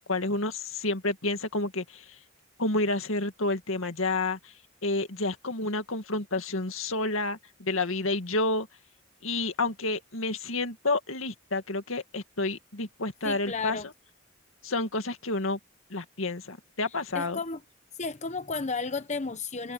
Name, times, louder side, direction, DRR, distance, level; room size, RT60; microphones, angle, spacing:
voice 1, 0.0-2.2 2.6-4.5 4.8-8.7 9.2-13.8 14.6-15.6 15.9-17.4, left 2 dB, 85° left, 2.2 m, -30 dB
voice 2, 13.2-13.9 17.1-17.6 18.0-19.7, left 4 dB, 35° left, 0.9 m, -33 dB
head